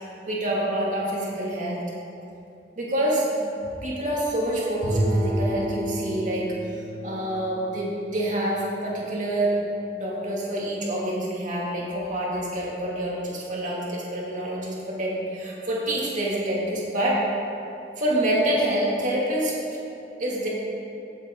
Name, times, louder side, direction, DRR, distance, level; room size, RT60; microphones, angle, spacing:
voice 1, 0.3-1.8 2.8-3.5 3.8-9.6 9.9-17.2 18.0-19.6 20.2-20.5, right 1 dB, 45° right, -5 dB, 2.5 m, -27 dB
Bowed string instrument, 4.8-9.1, right 1 dB, 85° right, 2.6 m, -30 dB
16.0 x 7.9 x 3.8 m, 2.8 s
head